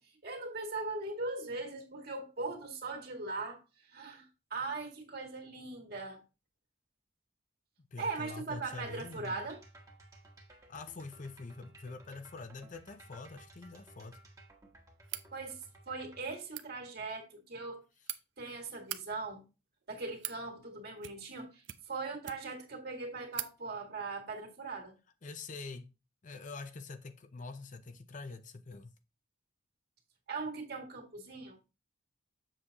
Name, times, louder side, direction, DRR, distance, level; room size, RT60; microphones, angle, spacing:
voice 1, 0.0-6.2 8.0-9.6 15.3-17.8 18.4-19.4 19.9-24.9 30.3-31.6, right 3 dB, 50° right, 2.1 m, -40 dB
voice 2, 7.9-9.5 10.7-14.2 25.2-25.9 26.2-29.0, left 3 dB, 40° left, 0.5 m, -45 dB
sound 1, 8.5-16.4, right 1 dB, 15° right, 1.2 m, -57 dB
sound 2, 15.0-15.3 16.4-16.7 17.6-18.2 18.8-19.0 19.8-20.4 21.0-21.4 21.6-22.6 22.9-23.0 23.3-23.5, right 14 dB, 70° right, 0.5 m, -42 dB
7.5 x 6.3 x 2.9 m
head